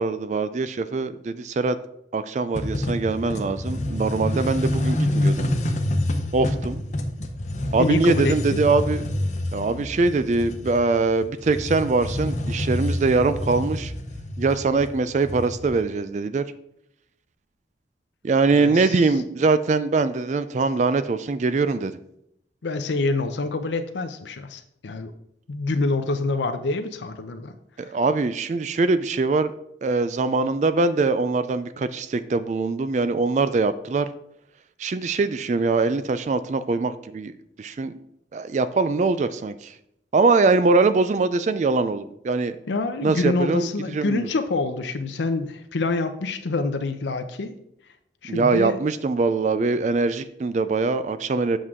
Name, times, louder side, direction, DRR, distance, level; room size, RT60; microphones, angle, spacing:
voice 1, 0.0-1.8 2.1-5.5 6.3-6.8 7.7-9.0 9.5-13.9 14.4-16.4 18.2-22.0 27.8-29.5 29.8-34.1 34.8-37.3 37.6-37.9 38.3-39.7 40.1-42.6 43.0-43.7 43.9-44.3 48.3-51.6, right 3 dB, 40° right, 13 dB, 0.3 m, -22 dB
sound 1, 2.5-15.8, left 1 dB, 40° left, 0.8 m, -27 dB
voice 2, 7.8-8.6 18.5-19.1 22.6-25.1 25.5-27.5 27.8-27.9 42.7-47.5 48.2-48.8, left 3 dB, 85° left, 8 dB, 0.6 m, -26 dB
7.9 x 6.2 x 3.6 m, 0.77 s
head